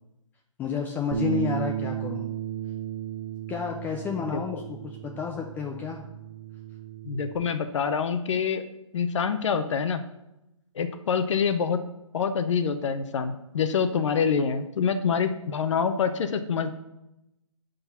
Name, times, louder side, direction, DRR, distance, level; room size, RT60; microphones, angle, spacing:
voice 1, 0.6-2.3 3.5-6.0, left 6 dB, 10° left, 2 dB, 0.4 m, -31 dB
Bass guitar, 1.1-7.4, right 10 dB, 60° right, 1.0 m, -34 dB
voice 2, 4.2-4.6 7.0-8.6 8.9-10.0 10.7-11.8 12.1-16.7, left 6 dB, 65° left, 10 dB, 0.7 m, -26 dB
10.5 x 3.9 x 5.6 m, 0.90 s
hypercardioid pair, 145°, 17 cm